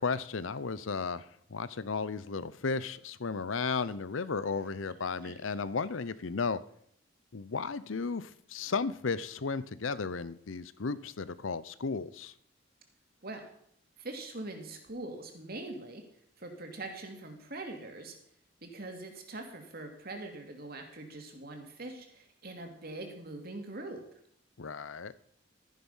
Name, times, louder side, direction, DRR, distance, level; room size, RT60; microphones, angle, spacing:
voice 1, 0.0-6.6 7.3-12.3 24.6-25.1, left 4 dB, 85° left, 17 dB, 0.7 m, -34 dB
voice 2, 14.0-16.0 16.4-18.2 18.6-24.0, right 2 dB, 50° right, 4 dB, 2.5 m, -43 dB
13.0 x 10.5 x 5.6 m, 0.68 s
head